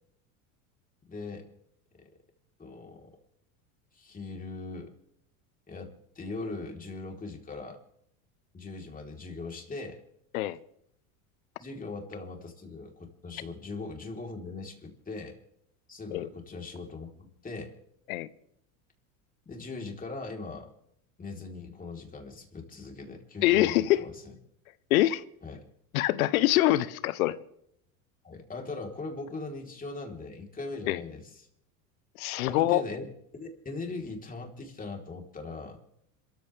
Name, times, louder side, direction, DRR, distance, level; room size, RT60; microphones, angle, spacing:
voice 1, 1.1-1.5 2.0-2.1 2.6-3.1 3.9-4.9 5.7-7.8 8.5-10.0 11.6-15.4 15.9-17.7 19.5-20.7 21.2-24.3 25.4-25.6 28.2-31.5 32.4-35.8, left 3 dB, 20° left, 4.0 m, -40 dB
voice 2, 23.4-24.0 24.9-25.2 25.9-27.4 30.9-31.0 32.2-32.8, left 15 dB, 80° left, 1.0 m, -24 dB
27.0 x 14.5 x 3.5 m
supercardioid pair, 105°, 42 cm